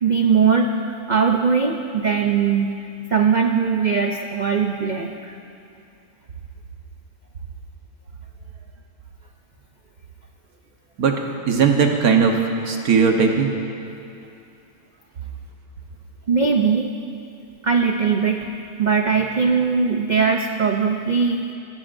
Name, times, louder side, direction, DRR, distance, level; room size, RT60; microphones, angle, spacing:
voice 1, 0.0-2.7 3.1-5.4 16.3-16.9 17.6-18.5 18.8-21.4, right 5 dB, 85° right, 3 dB, 0.4 m, -20 dB
voice 2, 11.0-12.4 12.6-13.5, right 5 dB, 70° right, 2 dB, 1.6 m, -18 dB
21.0 x 15.5 x 2.6 m, 2.6 s
omnidirectional pair, 1.7 m